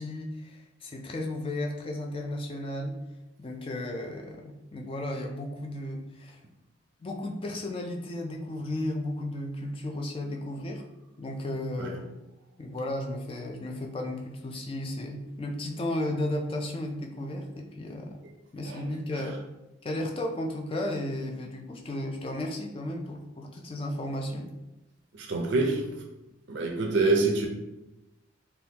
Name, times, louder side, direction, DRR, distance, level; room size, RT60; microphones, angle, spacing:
voice 1, 0.0-3.0 3.4-6.4 7.0-10.8 11.2-12.0 12.6-18.2 18.5-19.4 19.8-24.5, left 1 dB, 25° left, 2 dB, 0.3 m, -34 dB
voice 2, 25.1-26.0 26.5-27.5, right 3 dB, 55° right, 1 dB, 0.4 m, -27 dB
3.4 x 2.3 x 2.8 m, 0.96 s
head